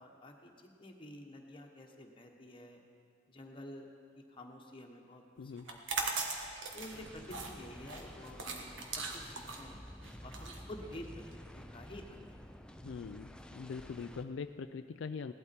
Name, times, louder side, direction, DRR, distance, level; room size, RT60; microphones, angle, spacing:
voice 1, 0.0-2.8 3.3-3.9 4.3-5.2 5.7-6.2 6.7-8.8 9.1-9.8 10.2-12.4, left 1 dB, 30° left, 2 dB, 1.3 m, -50 dB
voice 2, 5.4-5.7 12.8-15.3, left 5 dB, 75° left, 9 dB, 0.4 m, -42 dB
sound 1, 5.6-11.3, right 4 dB, 90° right, 1.4 m, -40 dB
sound 2, 6.9-14.2, equal, 5° left, 0.5 m, -51 dB
17.5 x 12.0 x 4.4 m, 2.4 s
head